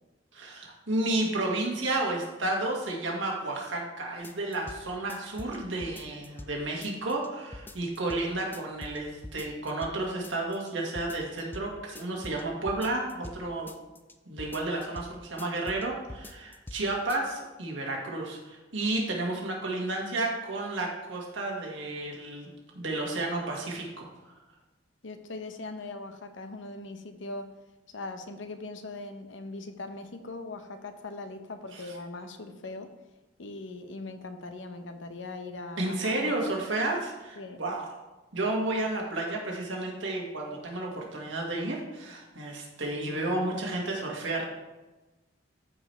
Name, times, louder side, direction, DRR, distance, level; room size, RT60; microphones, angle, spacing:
voice 1, 0.3-13.7 14.3-24.3 31.7-31.9 35.8-38.0 38.3-44.4, right 2 dB, 90° right, -1 dB, 1.9 m, -32 dB
sound 1, 4.2-4.8 5.1-6.5 6.8-7.3 7.5-8.2 8.5-9.0 9.2-10.0 10.2-10.7 11.0-11.7 12.0-13.4 13.7-14.1 14.4-15.1 15.4-15.8 16.1-16.8 17.1-17.2, left 1 dB, 10° left, 0.4 m, -43 dB
voice 2, 25.0-27.5 27.9-32.9 33.4-36.6 37.4-37.6, left 2 dB, 80° left, 8 dB, 0.8 m, -40 dB
13.5 x 5.0 x 3.3 m, 1.1 s
head